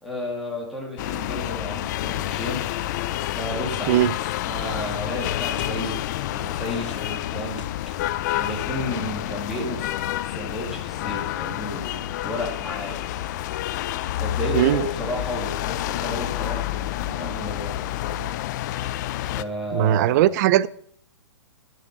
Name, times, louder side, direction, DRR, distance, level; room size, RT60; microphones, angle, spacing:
voice 1, 0.0-2.6 3.3-6.0 6.3-7.6 8.4-9.9 10.2-13.2 14.2-18.4 19.2-20.3, equal, ahead, 2.4 m, -33 dB
sound 1, 1.0-19.4, left 14 dB, 40° left, 0.4 m, -29 dB
sound 2, 2.1-2.8 3.7-4.3 4.9-5.0 5.6-5.8 6.8-8.1 8.5-8.8, left 6 dB, 80° left, 1.9 m, -44 dB
voice 2, 19.7-20.7, right 13 dB, 35° right, 0.4 m, -19 dB
10.0 x 6.3 x 6.7 m
hypercardioid pair, 145°, 15 cm